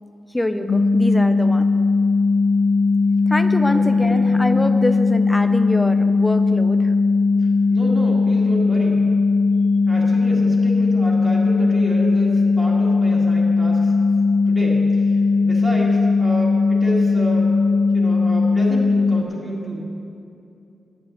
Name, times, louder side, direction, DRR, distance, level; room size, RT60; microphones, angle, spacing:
voice 1, 0.3-1.8 3.3-6.9, left 1 dB, 10° left, 9 dB, 0.5 m, -25 dB
sound 1, 0.7-19.2, left 4 dB, 70° left, 0.8 m, -18 dB
voice 2, 3.7-4.4 7.4-9.0 9.9-13.9 14.5-17.5 17.9-19.8, right 1 dB, 20° right, -6 dB, 2.0 m, -30 dB
10.0 x 6.9 x 9.1 m, 2.6 s
wide cardioid pair, 140°, 0 cm